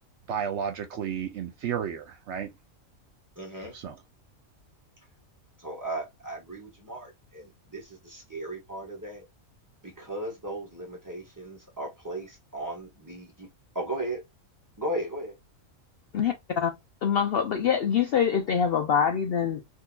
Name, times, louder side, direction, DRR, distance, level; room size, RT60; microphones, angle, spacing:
voice 1, 0.3-2.5 3.7-4.0, right 8 dB, 65° right, 0.8 m, -32 dB
voice 2, 3.4-3.8 5.6-9.2 9.8-13.5 13.7-14.2 14.8-15.4, right 1 dB, 15° right, 1.0 m, -36 dB
voice 3, 16.1-16.7 17.0-19.6, left 7 dB, 65° left, 0.6 m, -25 dB
3.7 x 2.7 x 2.2 m
omnidirectional pair, 1.4 m